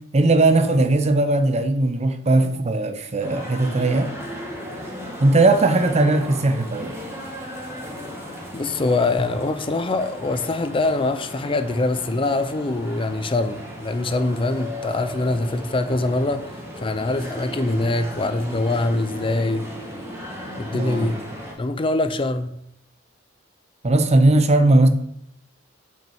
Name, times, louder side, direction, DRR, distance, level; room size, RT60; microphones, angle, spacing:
voice 1, 0.1-4.2 5.2-6.9 20.7-21.1 23.8-24.9, right 2 dB, 35° right, 0.7 m, -18 dB
sound 1, 3.2-21.5, equal, 15° right, 1.8 m, -36 dB
voice 2, 8.5-19.7 20.6-21.2 21.6-22.5, left 2 dB, 25° left, 0.5 m, -23 dB
6.1 x 5.4 x 7.0 m
head